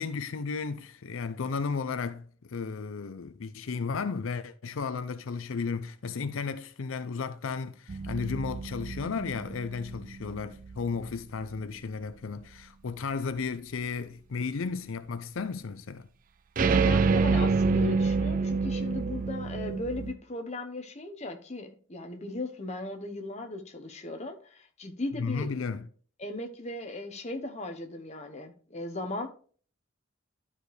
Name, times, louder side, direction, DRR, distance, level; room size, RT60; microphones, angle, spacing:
voice 1, 0.0-16.1 25.2-25.9, left 5 dB, 80° left, 0.5 m, -34 dB
sound 1, 7.9-10.8 16.6-20.1, right 4 dB, 40° right, 0.4 m, -27 dB
voice 2, 16.6-25.6 26.2-29.3, left 2 dB, 35° left, 0.9 m, -37 dB
12.0 x 4.9 x 3.2 m
head